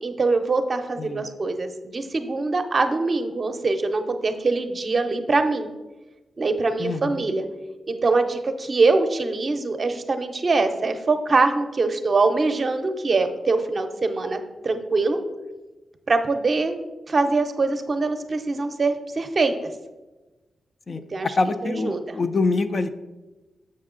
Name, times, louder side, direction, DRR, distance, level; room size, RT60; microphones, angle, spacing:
voice 1, 0.0-5.7 6.4-7.4 7.9-15.2 16.1-16.8 17.1-19.5 20.9-21.3 21.6-22.2, right 3 dB, 40° right, 7 dB, 0.6 m, -23 dB
voice 2, 1.0-1.3 6.8-7.2 20.9-21.0 21.4-22.9, left 3 dB, 40° left, 9 dB, 0.4 m, -25 dB
7.5 x 5.3 x 3.7 m, 1.1 s
wide cardioid pair, 105°, 0 cm